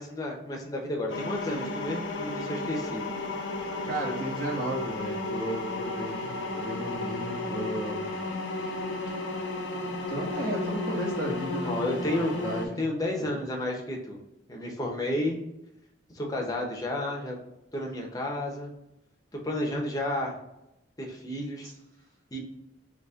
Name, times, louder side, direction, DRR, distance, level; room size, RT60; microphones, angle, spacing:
voice 1, 0.0-3.0 11.6-12.3 12.8-14.2 14.5-15.4 16.1-17.4 17.7-18.7 19.4-20.4 21.0-21.7 22.3-22.4, left 1 dB, 20° left, 0 dB, 0.8 m, -31 dB
sound 1, 1.1-12.7, left 2 dB, 75° left, 0.8 m, -33 dB
voice 2, 3.8-8.1 9.2-9.4 10.1-12.7 13.3-13.4 21.6-21.7, right 1 dB, 45° right, -3 dB, 1.2 m, -34 dB
4.2 x 2.9 x 3.6 m, 0.88 s
head